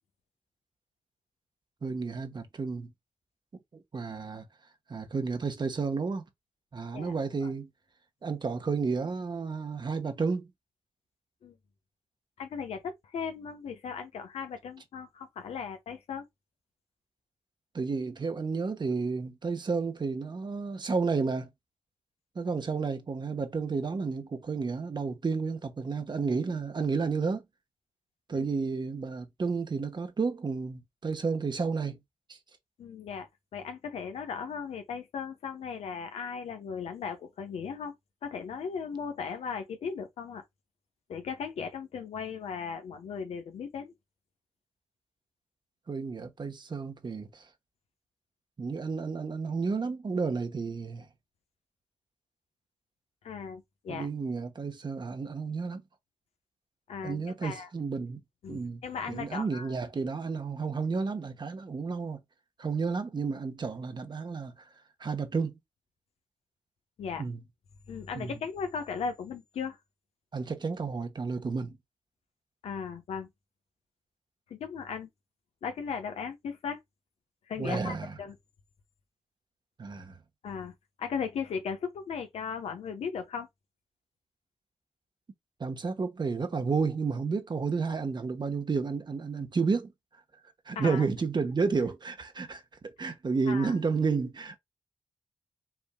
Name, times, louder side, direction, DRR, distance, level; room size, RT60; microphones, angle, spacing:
voice 1, 1.8-2.9 3.7-4.4 4.9-6.2 6.7-7.7 8.2-10.5 17.7-21.5 22.3-27.4 28.3-32.0 32.3-32.4 45.9-47.5 48.6-51.1 53.9-55.8 57.0-58.2 58.5-58.8 59.1-62.2 62.6-64.5 65.0-65.6 67.2-67.4 68.1-68.4 70.3-71.8 77.6-78.2 79.8-80.2 85.6-89.9 90.7-94.6, right 4 dB, 45° right, 1.1 m, -31 dB
voice 2, 12.4-16.2 28.3-28.5 32.8-37.9 38.2-40.4 41.1-43.9 53.2-54.1 56.9-57.7 58.4-59.7 67.0-67.2 67.9-69.8 72.6-73.3 74.5-75.1 75.6-76.8 77.5-78.4 80.4-80.7 81.0-83.5 90.7-91.0 93.5-93.8, left 6 dB, 90° left, 0.9 m, -37 dB
5.8 x 3.6 x 2.2 m
cardioid pair, 60°, 10 cm